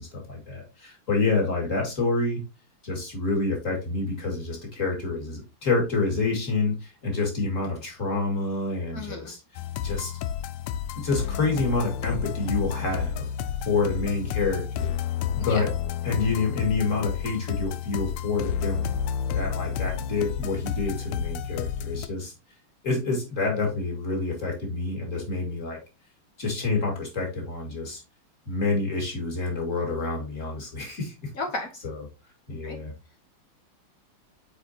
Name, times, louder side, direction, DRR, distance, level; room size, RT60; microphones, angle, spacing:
voice 1, 0.0-2.4 2.8-9.4 9.8-10.1 11.0-13.3 13.6-14.9 15.3-15.7 16.0-19.0 19.3-22.3 22.8-25.8 26.4-28.0 28.5-31.3 31.8-32.0 32.5-32.9, left 3 dB, 35° left, 0 dB, 2.4 m, -28 dB
voice 2, 8.9-9.3 15.4-15.6 31.3-31.7 32.6-32.8, left 2 dB, 60° left, 5 dB, 0.9 m, -33 dB
sound 1, 9.6-22.1, left 8 dB, 90° left, 1.5 m, -30 dB
7.9 x 4.4 x 2.8 m, 0.28 s
omnidirectional pair, 2.4 m